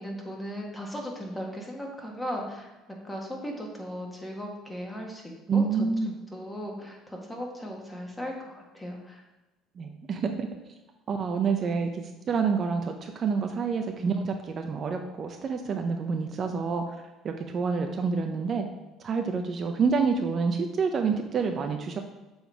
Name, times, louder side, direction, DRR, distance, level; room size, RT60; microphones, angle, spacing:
voice 1, 0.0-2.7 3.0-5.6 6.3-9.2, equal, 10° left, 0 dB, 1.6 m, -37 dB
voice 2, 5.5-6.1 9.8-10.5 11.1-16.8 17.2-18.6 19.0-22.0, right 5 dB, 45° right, 4 dB, 0.6 m, -28 dB
7.0 x 3.9 x 4.6 m, 1.1 s
supercardioid pair, 95°, 0 cm